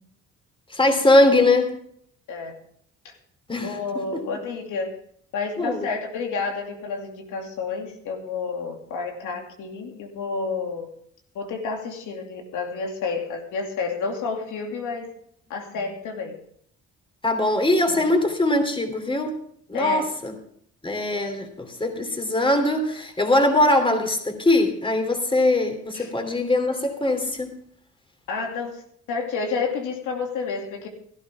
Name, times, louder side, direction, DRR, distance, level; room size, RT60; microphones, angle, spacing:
voice 1, 0.7-1.7 3.5-3.7 4.1-4.2 5.6-5.9 17.2-19.3 19.7-20.3 20.8-27.5, left 1 dB, 15° left, 5 dB, 3.1 m, -21 dB
voice 2, 3.6-4.9 5.3-10.9 11.3-15.1 15.5-16.3 17.9-18.0 19.7-20.1 25.9-26.1 28.3-28.8 29.1-30.9, left 4 dB, 85° left, 3 dB, 2.7 m, -30 dB
16.5 x 13.0 x 3.6 m, 0.65 s
cardioid pair, 90°, 30 cm